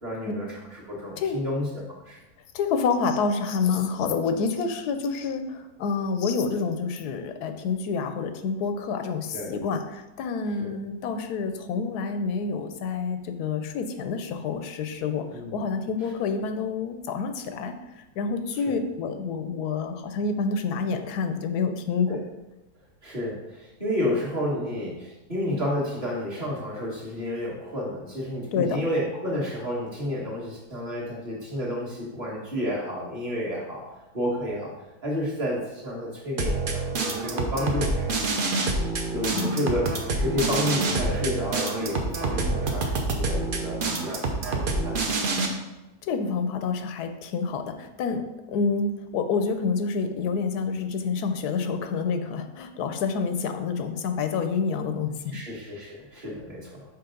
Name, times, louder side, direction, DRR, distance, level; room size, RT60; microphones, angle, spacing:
voice 1, 0.0-2.2 9.3-9.5 10.6-10.7 15.3-15.6 18.7-18.8 22.1-22.2 23.0-33.8 34.1-34.7 35.0-38.1 39.1-39.9 40.2-45.0 55.3-56.8, left 1 dB, 30° right, -6 dB, 1.8 m, -31 dB
voice 2, 2.5-22.2 28.5-28.8 39.3-39.6 46.0-48.2 48.5-55.4, left 5 dB, 90° left, 7 dB, 1.2 m, -28 dB
sound 1, 36.4-45.5, right 3 dB, 45° right, 0.7 m, -27 dB
5.8 x 5.0 x 3.8 m, 0.99 s
omnidirectional pair, 1.6 m